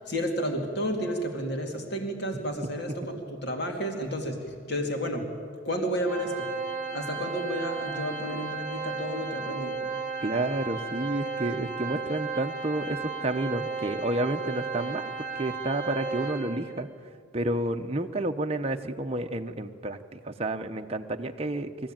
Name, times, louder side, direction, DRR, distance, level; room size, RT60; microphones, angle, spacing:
voice 1, 0.0-5.3 5.6-6.5 6.9-9.8, equal, 50° left, 3 dB, 2.6 m, -31 dB
Organ, 6.1-16.8, right 5 dB, 5° right, 1.9 m, -34 dB
voice 2, 10.2-16.9 17.3-21.7, right 1 dB, 30° right, 5 dB, 0.8 m, -30 dB
22.0 x 14.5 x 8.9 m, 2.2 s
head